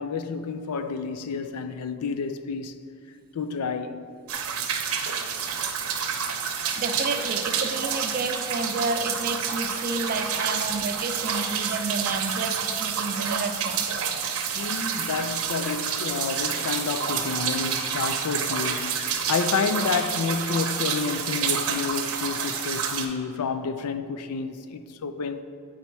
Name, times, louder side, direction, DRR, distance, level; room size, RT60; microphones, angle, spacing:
voice 1, 0.0-2.8 3.3-4.1 14.6-25.4, left 5 dB, 90° left, 0.4 m, -29 dB
sound 1, 4.3-23.1, right 7 dB, 70° right, 0.7 m, -29 dB
voice 2, 6.8-13.8, right 3 dB, 40° right, 0.4 m, -30 dB
8.2 x 4.2 x 4.5 m
head